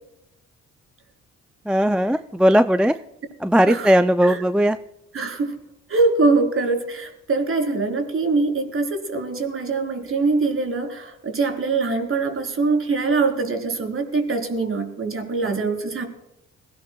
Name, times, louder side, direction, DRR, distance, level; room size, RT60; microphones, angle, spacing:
voice 1, 1.7-3.0 3.4-4.8 15.5-15.6, equal, 5° right, 10 dB, 0.4 m, -18 dB
voice 2, 5.1-5.6 5.9-16.1, right 3 dB, 45° right, 3 dB, 4.0 m, -23 dB
22.0 x 17.5 x 2.3 m, 0.87 s
cardioid pair, 90°, 30 cm